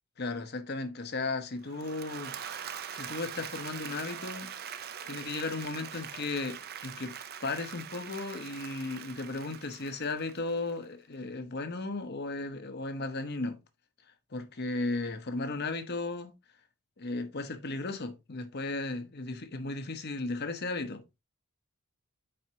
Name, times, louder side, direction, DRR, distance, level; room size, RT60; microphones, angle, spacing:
voice 1, 0.2-2.3 2.9-4.5 5.0-7.2 7.4-13.6 14.3-16.3 17.0-21.0, left 3 dB, 45° left, 0.9 m, -35 dB
Applause / Crowd, 1.6-10.8, right 8 dB, 45° right, 0.6 m, -43 dB
7.7 x 4.9 x 2.8 m
head